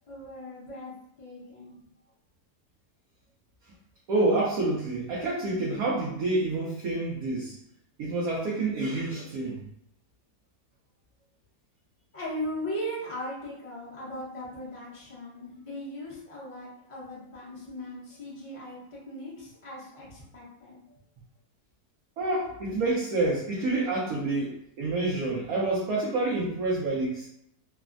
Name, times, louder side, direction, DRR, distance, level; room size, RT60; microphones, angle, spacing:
voice 1, 0.1-0.9 1.2-1.7 12.1-21.0, equal, 30° left, -6 dB, 0.7 m, -38 dB
voice 2, 4.1-7.5 8.0-9.6 22.2-27.3, right 2 dB, 70° right, -5 dB, 1.0 m, -28 dB
3.2 x 2.1 x 2.4 m, 0.74 s
omnidirectional pair, 1.8 m